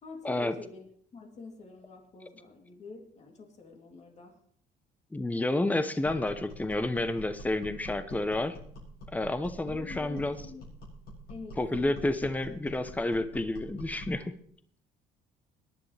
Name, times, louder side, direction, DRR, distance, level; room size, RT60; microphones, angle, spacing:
voice 1, 0.0-4.4 9.6-10.7 11.3-11.9, left 4 dB, 40° left, 1 dB, 3.1 m, -47 dB
voice 2, 5.1-8.6 9.1-10.4 11.6-14.3, left 2 dB, 10° left, 11 dB, 0.8 m, -30 dB
sound 1, 6.0-14.2, equal, 65° left, 7.4 m, -45 dB
21.5 x 10.5 x 3.4 m, 0.63 s
cardioid pair, 110°, 17 cm